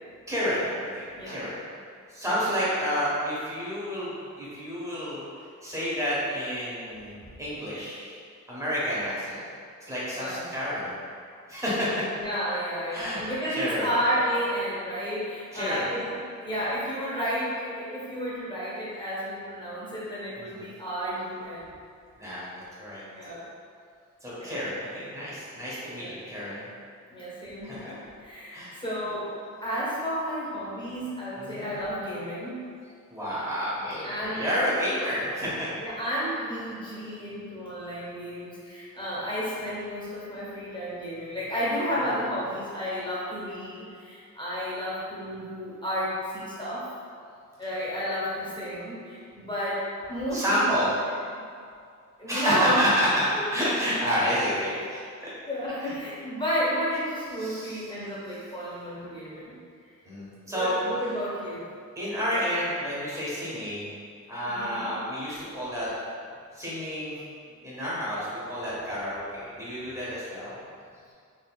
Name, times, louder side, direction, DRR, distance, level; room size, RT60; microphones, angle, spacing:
voice 1, 0.3-0.7 0.9-1.6 2.1-4.1 4.4-5.2 5.6-8.2 8.5-9.4 9.9-10.9 11.5-11.9 12.9-13.2 13.5-13.9 15.5-16.2 20.4-20.7 22.2-22.5 22.8-23.0 24.2-26.6 27.6-27.9 28.5-28.8 31.3-31.7 33.1-35.7 50.3-50.9 52.3-55.0 55.8-56.0 57.3-57.9 60.0-61.1 61.9-63.9 64.3-65.9 66.5-67.2 67.6-70.5, equal, 10° right, -10 dB, 1.5 m, -29 dB
voice 2, 10.1-10.4 12.2-21.7 23.1-23.5 24.4-24.5 25.9-26.1 27.1-29.3 29.6-32.6 34.0-34.5 34.9-35.0 35.8-46.9 47.6-50.8 52.2-53.4 54.6-54.7 55.5-59.6 60.5-61.6 64.5-64.9, equal, 15° left, -9 dB, 1.4 m, -32 dB
4.0 x 3.1 x 2.4 m, 2.3 s
cardioid pair, 80°, 30 cm